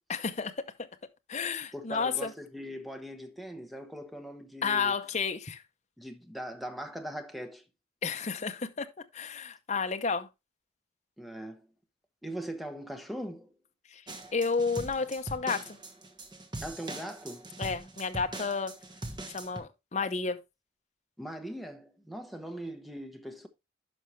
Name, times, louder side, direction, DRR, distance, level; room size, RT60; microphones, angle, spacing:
voice 1, 0.1-0.6 1.3-2.3 4.6-5.6 8.0-10.3 13.9-14.0 14.3-15.8 17.6-18.7 19.3-20.4, left 5 dB, 40° left, 0.7 m, -31 dB
voice 2, 1.7-4.9 6.0-7.6 11.2-11.7 12.2-13.5 16.6-17.5 21.2-23.5, right 1 dB, ahead, 1.0 m, -40 dB
sound 1, 14.1-19.6, right 2 dB, 25° right, 1.2 m, -42 dB
10.5 x 5.7 x 3.2 m
head